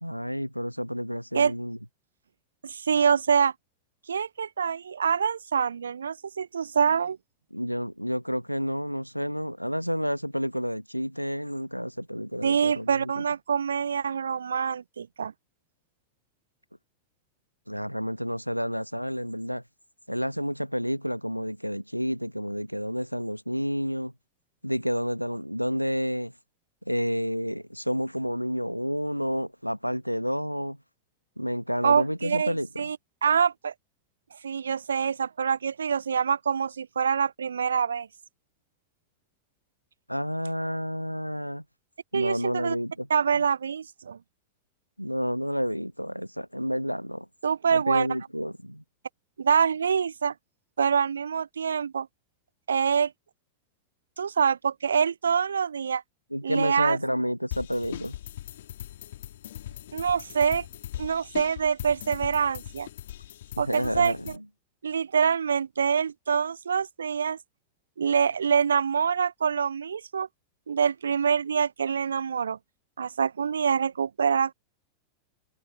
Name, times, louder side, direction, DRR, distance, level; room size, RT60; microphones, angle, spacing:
voice 1, 0.0-1.8 7.5-13.2 17.7-19.6 20.1-24.1 24.6-26.3 26.9-30.8 31.4-32.9 40.1-41.6 42.1-43.1 43.3-43.4 45.0-47.2 47.7-48.8 56.3-58.1 63.6-64.3, equal, 90° left, 1.3 m, -30 dB
voice 2, 2.6-3.5 4.1-7.2 12.4-15.3 31.8-33.0 33.2-33.7 34.4-38.1 42.1-42.8 43.1-44.2 47.4-48.1 49.4-50.3 50.8-52.1 52.7-53.1 54.2-56.0 56.4-57.0 59.9-60.7 61.0-62.9 63.6-64.1 64.8-67.4 68.0-70.3 70.7-72.6 73.0-74.5, right 7 dB, 70° right, 0.6 m, -25 dB
sound 1, 57.5-64.4, left 12 dB, 60° left, 1.8 m, -40 dB
figure-of-eight pair, 90°, 0 cm